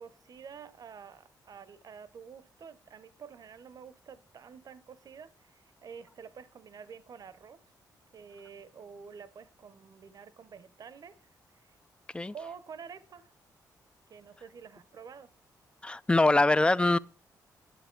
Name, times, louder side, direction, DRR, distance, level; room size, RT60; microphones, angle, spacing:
voice 1, 0.0-7.6 8.1-11.8 12.3-13.3 14.1-15.3, right 6 dB, 55° right, 0.8 m, -49 dB
voice 2, 15.8-17.0, left 2 dB, 15° left, 0.4 m, -23 dB
10.5 x 7.6 x 4.5 m
cardioid pair, 80°, 8 cm